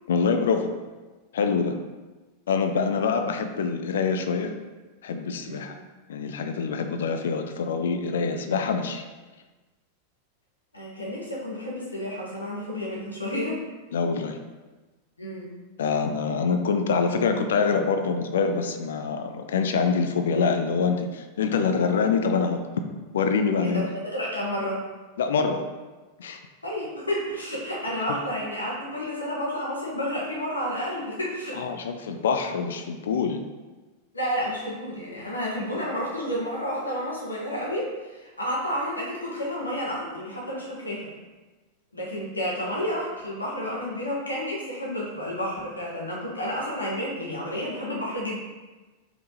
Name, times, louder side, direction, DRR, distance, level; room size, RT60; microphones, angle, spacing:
voice 1, 0.1-0.7 1.3-1.8 2.5-4.5 5.0-5.8 6.1-9.0 13.9-14.4 15.8-22.6 23.1-23.8 25.2-25.6 26.2-26.4 31.5-33.4, left 5 dB, 60° left, 6 dB, 0.3 m, -25 dB
voice 2, 10.7-13.6 15.2-15.5 23.6-24.8 26.6-31.6 34.1-41.1 41.9-48.4, equal, 80° left, -5 dB, 1.1 m, -30 dB
4.6 x 3.6 x 2.8 m, 1.2 s
figure-of-eight pair, 90°, 0 cm